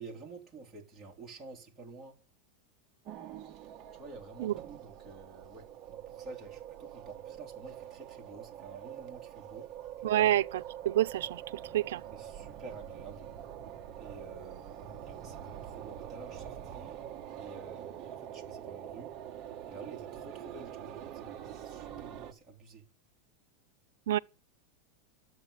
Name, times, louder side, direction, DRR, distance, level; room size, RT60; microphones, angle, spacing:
voice 1, 0.0-2.2 3.9-9.7 10.0-10.4 12.1-13.3 14.0-17.0 17.4-19.1 19.7-22.8, right 3 dB, 10° right, 3.3 m, -50 dB
sound 1, 3.1-22.3, right 10 dB, 25° right, 1.4 m, -45 dB
voice 2, 10.0-10.4 10.8-11.4 11.7-12.0 24.1-24.2, right 13 dB, 75° right, 0.8 m, -27 dB
13.0 x 8.4 x 9.8 m
supercardioid pair, 180°, 0 cm